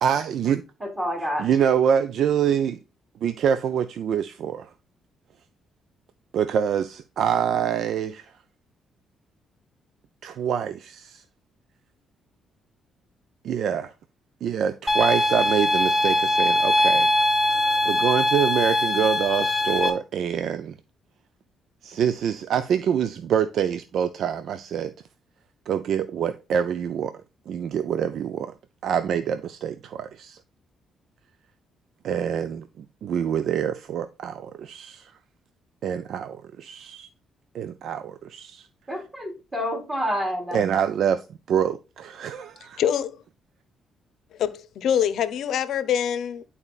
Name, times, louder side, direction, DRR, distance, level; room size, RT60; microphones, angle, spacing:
voice 1, 0.0-0.6 1.4-2.8 3.2-4.7 6.3-8.3 10.2-11.2 13.4-13.9 14.4-17.1 17.9-20.8 21.8-24.9 25.7-28.5 28.8-30.4 32.0-35.1 35.8-37.1 37.5-38.7 40.5-42.8, right 8 dB, 70° right, 0.4 m, -26 dB
voice 2, 0.8-1.6 38.9-40.6, equal, 25° right, 3.6 m, -28 dB
sound 1, 14.9-19.9, left 1 dB, 10° left, 1.6 m, -21 dB
voice 3, 42.8-43.2 44.3-46.4, left 9 dB, 75° left, 0.7 m, -25 dB
11.0 x 4.2 x 2.4 m
cardioid pair, 90°, 0 cm